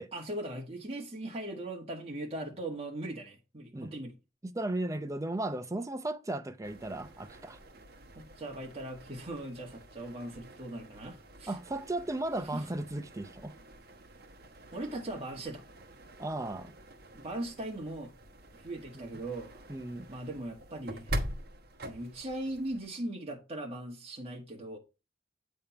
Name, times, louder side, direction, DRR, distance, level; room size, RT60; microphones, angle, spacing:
voice 1, 0.1-4.1 8.1-11.6 12.3-12.7 14.7-15.6 17.1-18.1 18.5-19.6 20.1-21.1 21.9-24.8, right 1 dB, 35° right, 1.5 m, -39 dB
voice 2, 4.4-7.6 11.5-13.5 16.2-16.7 19.0-19.1 19.7-20.1, right 2 dB, 15° right, 0.6 m, -35 dB
sound 1, 6.6-22.9, right 1 dB, 55° right, 1.1 m, -45 dB
8.5 x 3.6 x 5.8 m
head